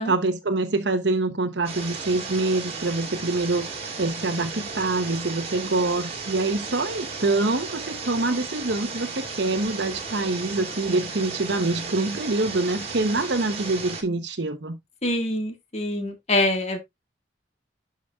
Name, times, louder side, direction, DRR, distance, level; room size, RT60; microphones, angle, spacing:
voice 1, 0.0-14.8, right 2 dB, 70° right, 0.9 m, -25 dB
sound 1, 1.6-14.0, right 4 dB, 35° right, 1.9 m, -35 dB
voice 2, 15.0-16.8, left 1 dB, 35° left, 1.9 m, -25 dB
12.0 x 5.2 x 2.4 m
head